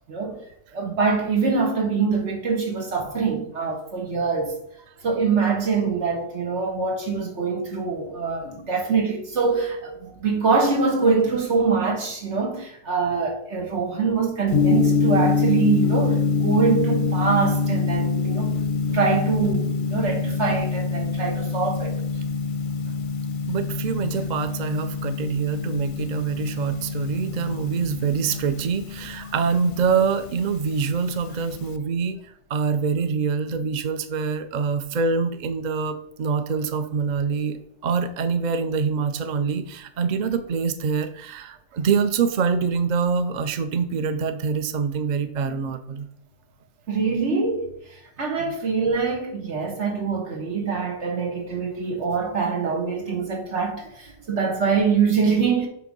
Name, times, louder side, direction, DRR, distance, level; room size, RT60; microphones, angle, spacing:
voice 1, 0.1-0.4 0.7-4.6 5.0-18.6 18.9-22.0 46.9-47.7 48.2-55.7, right 5 dB, 90° right, 1.8 m, -24 dB
Gong, 14.5-31.8, left 5 dB, 60° left, 0.6 m, -25 dB
voice 2, 23.5-46.1 54.2-54.3, right 5 dB, 50° right, 0.6 m, -25 dB
7.7 x 3.4 x 5.3 m
omnidirectional pair, 1.1 m